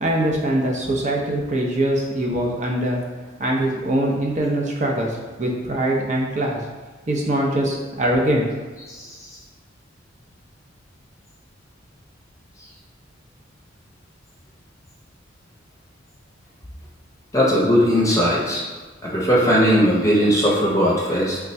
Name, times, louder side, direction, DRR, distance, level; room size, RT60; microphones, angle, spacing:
voice 1, 0.0-3.0 3.4-6.6 7.1-8.5, right 1 dB, 40° right, -1 dB, 0.6 m, -22 dB
voice 2, 17.3-18.6 19.0-21.4, equal, 15° left, -5 dB, 0.7 m, -18 dB
3.4 x 2.2 x 4.0 m, 1.3 s
head